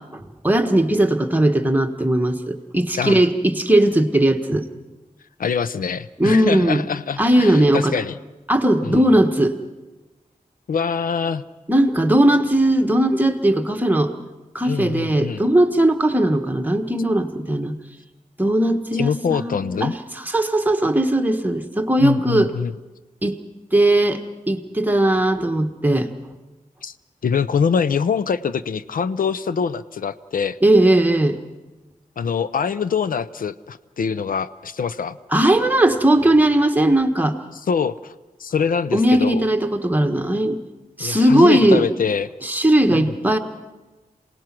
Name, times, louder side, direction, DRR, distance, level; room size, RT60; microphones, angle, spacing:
voice 1, 0.1-4.7 6.2-6.8 7.2-7.9 8.5-9.5 11.7-14.1 14.5-17.8 18.4-19.9 20.3-22.5 23.2-23.4 23.7-26.1 30.6-31.4 35.3-37.4 38.9-40.6 41.0-41.8 42.4-43.4, right 1 dB, 10° right, 6 dB, 1.3 m, -18 dB
voice 2, 2.9-3.3 5.4-8.2 8.8-9.0 10.7-11.4 14.6-15.4 18.9-19.9 22.0-22.8 26.8-26.9 27.2-30.6 32.2-35.2 37.6-38.1 38.4-39.5 41.0-42.3 42.9-43.0, left 6 dB, 90° left, 15 dB, 0.6 m, -24 dB
27.0 x 18.0 x 6.0 m, 1.1 s
wide cardioid pair, 135°, 14 cm